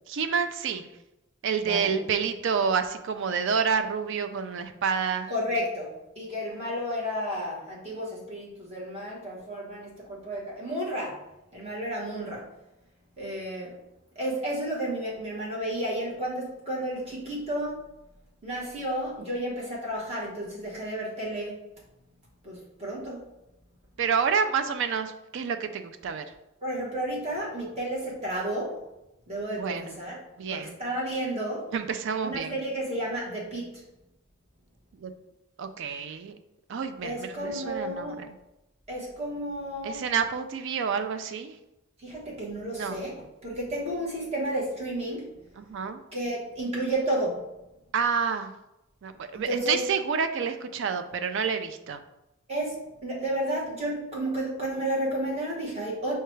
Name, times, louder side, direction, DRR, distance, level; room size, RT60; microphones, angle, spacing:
voice 1, 0.1-0.8 1.4-5.3 24.0-26.2 29.6-30.0 30.4-30.8 31.7-32.5 35.0-35.1 35.6-36.4 36.7-38.3 39.8-41.6 42.7-43.0 45.6-46.0 47.9-48.5 49.0-52.0, right 6 dB, 60° right, 9 dB, 0.4 m, -28 dB
voice 2, 5.3-5.9 6.2-11.2 11.5-12.4 13.2-13.8 14.1-17.8 18.4-21.6 22.4-23.2 26.6-28.8 29.3-30.2 30.5-31.7 32.2-33.8 37.0-38.2 38.9-40.1 42.0-43.1 43.4-45.3 46.1-47.4 49.3-49.8 52.5-56.1, right 1 dB, 30° right, -4 dB, 1.1 m, -32 dB
5.6 x 2.2 x 3.1 m, 0.92 s
head